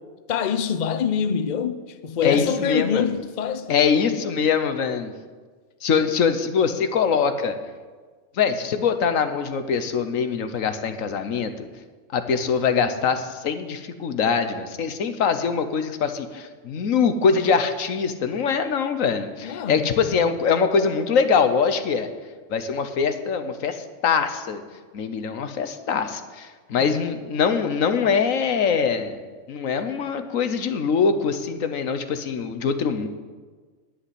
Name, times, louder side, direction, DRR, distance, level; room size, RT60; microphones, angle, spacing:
voice 1, 0.3-3.8 19.4-20.1 26.8-27.0, left 7 dB, 45° left, 0.6 m, -25 dB
voice 2, 2.2-3.1 3.7-5.1 5.8-7.6 8.4-11.7 12.1-22.1 22.5-24.6 24.9-29.2 29.5-33.1, left 6 dB, 80° left, 1.4 m, -23 dB
10.0 x 8.5 x 9.9 m
omnidirectional pair, 1.4 m